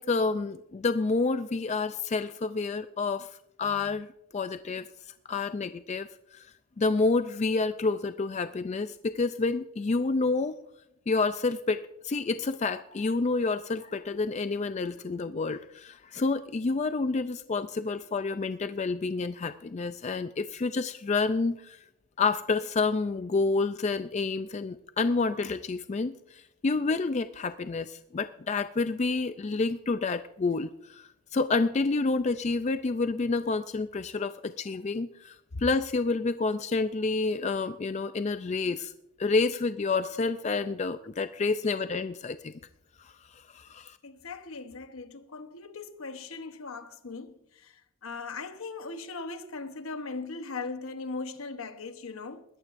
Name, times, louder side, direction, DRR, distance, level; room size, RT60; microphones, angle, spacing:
voice 1, 0.0-4.9 5.3-6.5 6.8-10.6 11.1-21.8 22.2-38.9 39.2-42.5 43.0-44.0, left 3 dB, 30° left, 0.3 m, -29 dB
voice 2, 41.4-41.8 44.0-52.4, left 4 dB, 75° left, 1.0 m, -39 dB
21.0 x 14.0 x 2.6 m
head